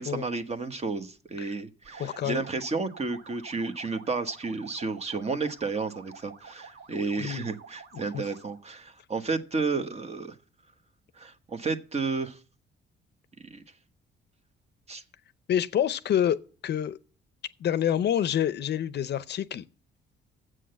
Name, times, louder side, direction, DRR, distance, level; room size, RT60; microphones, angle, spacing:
voice 1, 0.0-10.4 11.1-12.4 13.4-13.6 14.9-15.0, right 4 dB, 35° right, 1.1 m, -32 dB
sound 1, 1.8-8.7, right 5 dB, 75° right, 1.5 m, -49 dB
voice 2, 2.0-2.4 7.2-7.4 15.5-16.4 16.6-17.0 17.6-19.6, left 10 dB, 60° left, 0.6 m, -27 dB
7.7 x 6.3 x 7.8 m
cardioid pair, 90°, 20 cm